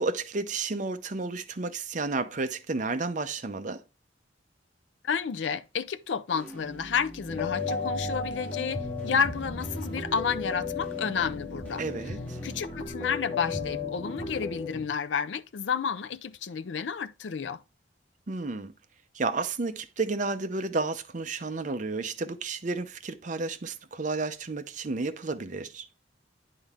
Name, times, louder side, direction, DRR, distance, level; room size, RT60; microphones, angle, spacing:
voice 1, 0.0-3.8 11.8-12.4 18.3-18.7 19.1-25.9, right 3 dB, 45° right, 0.7 m, -32 dB
voice 2, 5.0-11.8 12.4-17.6, left 6 dB, 85° left, 0.4 m, -31 dB
sound 1, 6.3-12.9, right 1 dB, 10° left, 2.0 m, -45 dB
sound 2, 7.3-14.9, left 3 dB, 35° left, 1.7 m, -34 dB
9.9 x 3.9 x 3.5 m
head